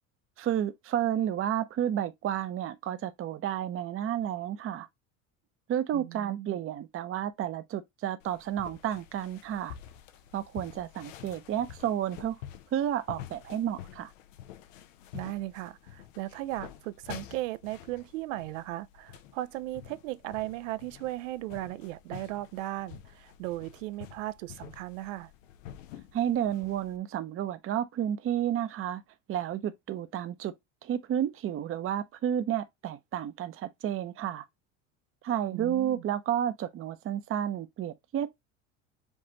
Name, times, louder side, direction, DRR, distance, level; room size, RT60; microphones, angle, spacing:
voice 1, 0.4-4.9 5.7-9.7 10.3-12.4 12.7-14.1 26.1-29.0 29.3-30.5 30.8-34.4 35.2-38.3, right 10 dB, 35° right, 0.6 m, -31 dB
voice 2, 5.9-6.5 15.1-25.3 35.5-36.0, right 16 dB, 80° right, 0.5 m, -37 dB
sound 1, 8.2-27.0, left 11 dB, 85° left, 0.7 m, -48 dB
5.3 x 2.5 x 2.9 m
hypercardioid pair, 80°, 37 cm